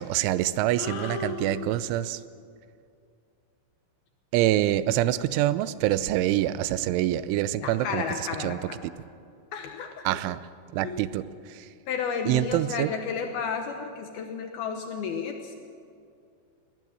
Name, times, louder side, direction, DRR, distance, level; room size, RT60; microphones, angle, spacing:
voice 1, 0.0-2.2 4.3-8.7 10.0-10.4 10.7-11.7 12.3-12.9, right 14 dB, 90° right, 15 dB, 3.2 m, -26 dB
voice 2, 0.8-1.7 7.6-8.8 9.5-10.1 10.8-11.0 11.9-15.5, left 6 dB, 70° left, 5 dB, 2.5 m, -32 dB
22.0 x 18.5 x 7.8 m, 2.4 s
omnidirectional pair, 5.4 m